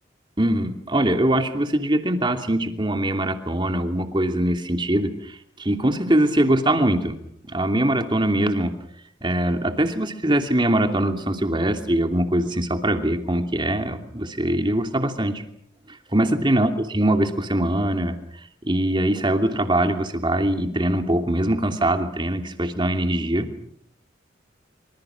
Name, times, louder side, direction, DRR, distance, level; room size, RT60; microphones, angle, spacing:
voice 1, 0.4-7.2 7.5-8.7 9.2-15.4 15.9-23.5, right 1 dB, 25° right, 6 dB, 2.8 m, -22 dB
26.5 x 26.0 x 6.1 m, 0.69 s
head